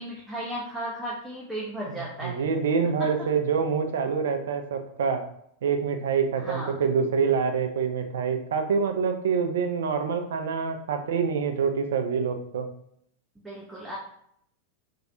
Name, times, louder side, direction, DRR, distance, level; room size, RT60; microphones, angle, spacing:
voice 1, 0.0-2.4 2.8-3.1 6.4-6.8 13.4-14.0, equal, 5° right, -6 dB, 0.6 m, -35 dB
voice 2, 1.9-5.2 5.6-12.7, right 6 dB, 60° right, 6 dB, 0.4 m, -26 dB
3.2 x 2.4 x 2.7 m, 0.70 s
figure-of-eight pair, 90°, 0 cm